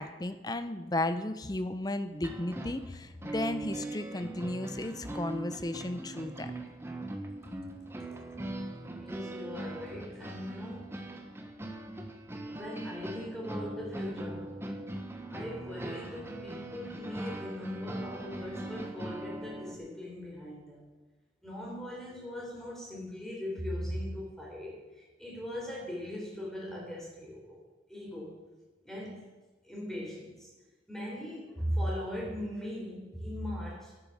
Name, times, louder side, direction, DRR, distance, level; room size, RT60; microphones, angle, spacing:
voice 1, 0.0-6.5, left 1 dB, 20° left, 11 dB, 0.6 m, -34 dB
sound 1, 2.1-19.8, right 1 dB, 15° right, 1.0 m, -40 dB
voice 2, 9.0-11.0 12.5-14.6 15.3-20.8 21.4-27.6 27.9-28.4 28.8-29.3 29.6-30.5 30.9-33.9, equal, ahead, -4 dB, 3.8 m, -39 dB
10.5 x 9.1 x 7.2 m, 1.2 s
head